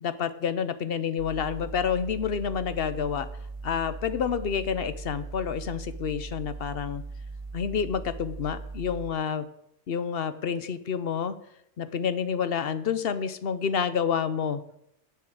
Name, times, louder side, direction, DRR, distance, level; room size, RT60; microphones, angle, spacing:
voice 1, 0.0-3.3 3.6-7.0 7.5-9.5 9.9-11.4 11.8-14.6, left 7 dB, 55° left, 13 dB, 0.9 m, -29 dB
sound 1, 1.2-9.1, right 3 dB, 35° right, 0.6 m, -39 dB
10.5 x 7.7 x 6.5 m, 0.76 s
omnidirectional pair, 1.2 m